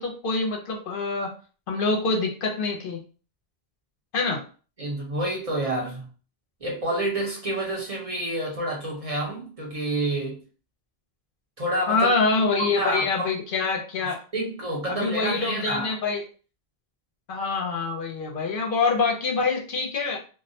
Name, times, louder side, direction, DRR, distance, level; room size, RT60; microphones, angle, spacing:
voice 1, 0.0-1.3 1.7-3.0 4.1-4.4 11.9-14.2 14.9-16.2 17.3-20.2, left 4 dB, 65° left, 0.7 m, -25 dB
voice 2, 4.8-6.1 6.6-10.4 11.6-12.1 12.6-13.3 14.3-15.9, right 1 dB, 40° right, 0.7 m, -28 dB
2.2 x 2.1 x 2.6 m
omnidirectional pair, 1.0 m